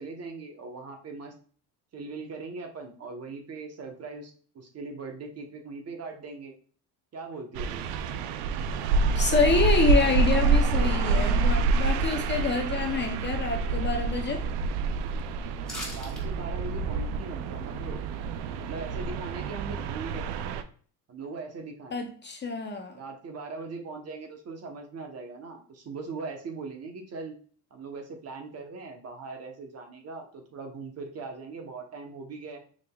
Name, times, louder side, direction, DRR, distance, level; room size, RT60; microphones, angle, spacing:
voice 1, 0.0-1.3 1.9-6.5 7.1-7.8 15.9-18.0 18.6-20.3 21.1-22.0 22.9-27.3 27.7-32.6, right 4 dB, 40° right, 4 dB, 1.0 m, -40 dB
sound 1, 7.5-20.6, right 4 dB, 90° right, 0.5 m, -27 dB
voice 2, 9.2-14.4 21.9-22.9, left 4 dB, 25° left, 4 dB, 0.6 m, -27 dB
sound 2, 15.6-16.2 16.6-16.7, left 1 dB, ahead, 1.7 m, -38 dB
5.0 x 3.5 x 2.2 m, 0.44 s
cardioid pair, 110°, 40 cm